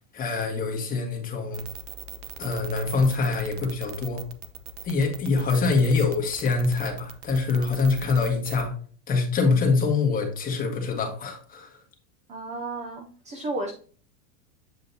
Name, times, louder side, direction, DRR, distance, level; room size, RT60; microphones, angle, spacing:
voice 1, 0.1-1.6 2.4-4.2 4.8-8.7 9.1-11.8, left 4 dB, 20° left, 1.4 m, -24 dB
sound 1, 1.5-8.7, right 9 dB, 55° right, 1.0 m, -40 dB
voice 2, 12.3-13.7, right 2 dB, 15° right, 0.4 m, -33 dB
8.1 x 5.0 x 2.8 m
supercardioid pair, 155°, 42 cm